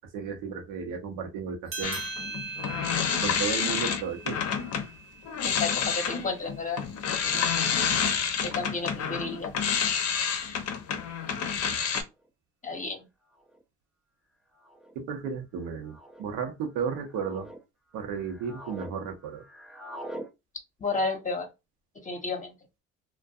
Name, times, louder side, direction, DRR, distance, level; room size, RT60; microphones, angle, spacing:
voice 1, 0.1-2.0 3.2-4.4 7.3-7.4 14.9-17.5 17.9-19.4, right 6 dB, 75° right, 0.8 m, -34 dB
sound 1, 1.7-6.6, right 4 dB, 40° right, 0.8 m, -41 dB
sound 2, 1.8-4.9 5.2-12.0, left 7 dB, 55° left, 0.6 m, -29 dB
voice 2, 5.4-6.8 8.4-9.5 12.6-13.0 20.8-21.5 22.0-22.5, left 3 dB, 25° left, 0.9 m, -31 dB
sound 3, 12.2-12.3 13.3-13.6 14.5-14.9 15.8-16.3 16.9-17.6 18.1-18.9 19.2-20.3, right 1 dB, ahead, 0.4 m, -44 dB
2.5 x 2.2 x 2.3 m
supercardioid pair, 75°, 31 cm